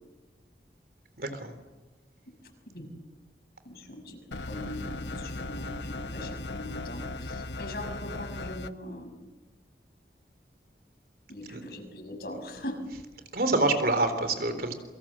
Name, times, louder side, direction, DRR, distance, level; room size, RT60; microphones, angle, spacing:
voice 1, 1.2-1.5 11.5-11.6 13.3-14.7, right 2 dB, 55° right, 9 dB, 3.7 m, -26 dB
voice 2, 3.6-4.2 4.5-9.2 11.3-12.8, left 1 dB, 60° left, 4 dB, 6.3 m, -41 dB
sound 1, 4.3-8.7, left 2 dB, 85° left, 1.1 m, -37 dB
28.5 x 24.5 x 7.6 m, 1.2 s
head